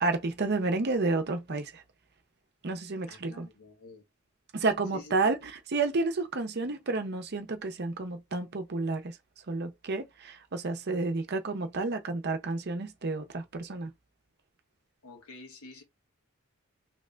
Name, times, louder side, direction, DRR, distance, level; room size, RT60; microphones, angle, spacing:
voice 1, 0.0-1.8 2.6-3.5 4.5-9.2 9.5-13.9, right 3 dB, 50° right, 0.7 m, -30 dB
voice 2, 3.1-4.0 4.9-5.1 15.0-15.8, left 2 dB, 85° left, 1.2 m, -48 dB
2.9 x 2.6 x 3.3 m
head